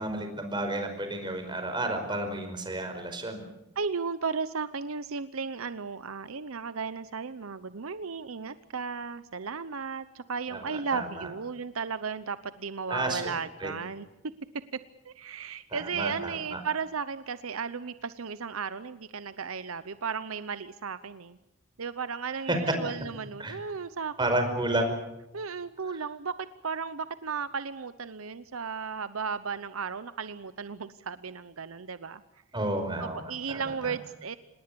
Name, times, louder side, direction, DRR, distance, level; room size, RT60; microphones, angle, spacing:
voice 1, 0.0-3.5 10.5-11.3 12.9-13.7 15.7-16.6 22.5-22.6 23.4-23.6 24.2-25.0 32.5-33.9, right 1 dB, 20° right, 6 dB, 5.2 m, -32 dB
voice 2, 3.8-14.1 15.0-21.4 21.8-24.8 25.3-32.2 33.0-34.4, right 5 dB, 75° right, 13 dB, 0.8 m, -35 dB
26.5 x 20.5 x 7.0 m, 0.90 s
head